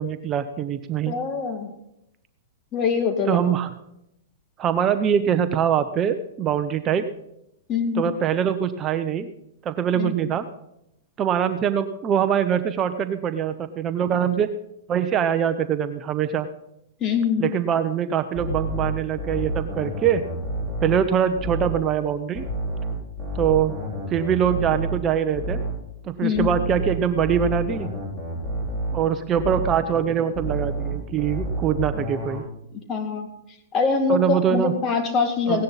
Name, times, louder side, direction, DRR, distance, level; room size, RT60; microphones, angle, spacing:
voice 1, 0.0-1.1 3.3-3.7 4.6-7.1 8.0-9.3 9.6-10.5 11.2-14.5 14.9-16.5 17.4-20.2 20.8-22.5 23.3-23.7 24.1-25.6 26.0-27.9 28.9-32.4 34.1-34.7 35.5-35.6, right 8 dB, 25° right, 9 dB, 0.8 m, -23 dB
voice 2, 1.1-1.7 2.7-3.4 7.7-8.1 10.0-10.1 17.0-17.5 26.2-26.5 32.7-33.3 33.7-35.6, left 5 dB, 30° left, 5 dB, 2.1 m, -23 dB
sound 1, 18.3-21.9 22.3-25.9 26.3-29.9 30.3-32.4, right 1 dB, 10° left, 6.2 m, -29 dB
17.0 x 10.5 x 4.1 m, 0.81 s
hypercardioid pair, 135°, 0 cm